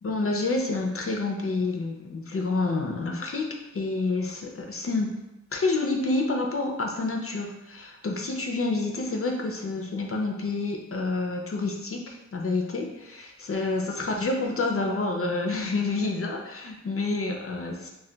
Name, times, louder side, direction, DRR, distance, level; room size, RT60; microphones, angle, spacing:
voice 1, 0.0-5.1 5.5-17.9, left 3 dB, 50° left, 1 dB, 0.4 m, -28 dB
2.2 x 2.2 x 3.8 m, 0.95 s
wide cardioid pair, 65°, 30 cm